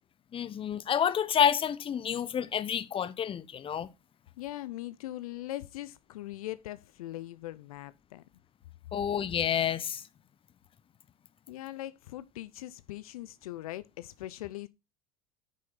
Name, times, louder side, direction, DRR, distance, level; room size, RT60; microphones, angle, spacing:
voice 1, 0.3-3.9 8.9-10.0, left 8 dB, 30° left, 0.9 m, -29 dB
voice 2, 4.4-8.2 11.5-14.7, left 15 dB, 70° left, 0.6 m, -41 dB
9.4 x 6.4 x 4.0 m
hypercardioid pair, 85°, 19 cm